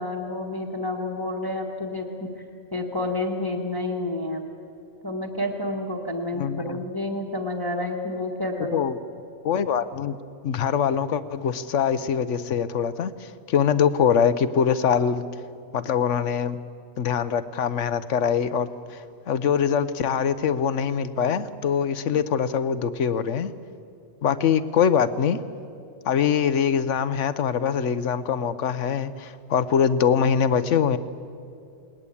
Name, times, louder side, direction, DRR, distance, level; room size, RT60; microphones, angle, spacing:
voice 1, 0.0-2.3 2.7-4.5 5.0-8.9, left 2 dB, 15° left, 1 dB, 1.4 m, -29 dB
voice 2, 6.3-6.8 8.7-8.9 9.4-10.2 10.4-15.2 15.7-16.6 17.0-23.5 24.2-25.4 26.1-31.0, left 7 dB, 70° left, 13 dB, 1.1 m, -23 dB
20.0 x 19.5 x 8.5 m, 2.4 s
omnidirectional pair, 1.3 m